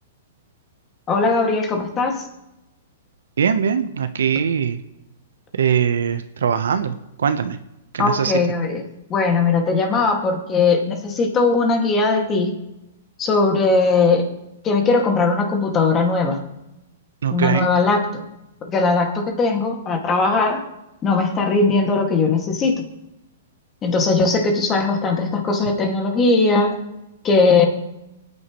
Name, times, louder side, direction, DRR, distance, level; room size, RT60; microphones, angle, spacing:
voice 1, 1.1-2.2 8.0-8.8 9.1-12.5 13.2-14.3 14.6-16.4 17.3-18.2 18.7-20.6 21.0-22.8 23.8-26.8 27.2-27.7, left 3 dB, 20° left, 3 dB, 2.1 m, -19 dB
voice 2, 3.4-4.8 5.6-6.9 7.2-7.6 7.9-8.3 17.2-17.7, right 7 dB, 85° right, 10 dB, 0.9 m, -21 dB
26.5 x 9.6 x 3.1 m, 0.94 s
hypercardioid pair, 145°, 0 cm